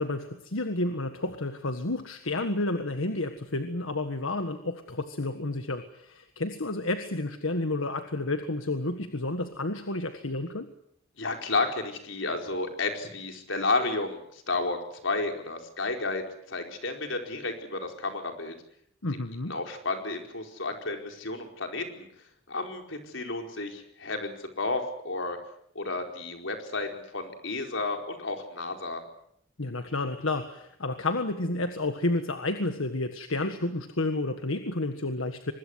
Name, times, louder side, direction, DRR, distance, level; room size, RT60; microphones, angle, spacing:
voice 1, 0.0-10.7 19.0-19.6 29.6-35.5, left 2 dB, 90° left, 7 dB, 1.7 m, -30 dB
voice 2, 11.2-18.5 19.5-22.1 22.5-25.4 25.7-29.0, left 3 dB, 70° left, 4 dB, 4.6 m, -32 dB
24.5 x 21.0 x 8.1 m, 0.72 s
head